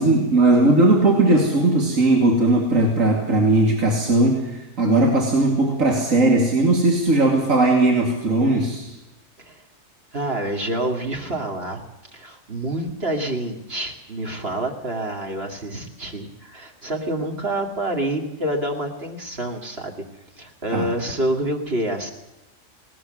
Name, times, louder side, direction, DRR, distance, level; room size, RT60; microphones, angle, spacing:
voice 1, 0.0-8.9 20.7-20.9, right 2 dB, 80° right, -1 dB, 3.0 m, -18 dB
voice 2, 10.1-11.8 12.1-20.0 20.4-22.1, right 1 dB, 50° right, 1 dB, 2.6 m, -27 dB
19.0 x 18.5 x 7.8 m, 0.95 s
omnidirectional pair, 1.4 m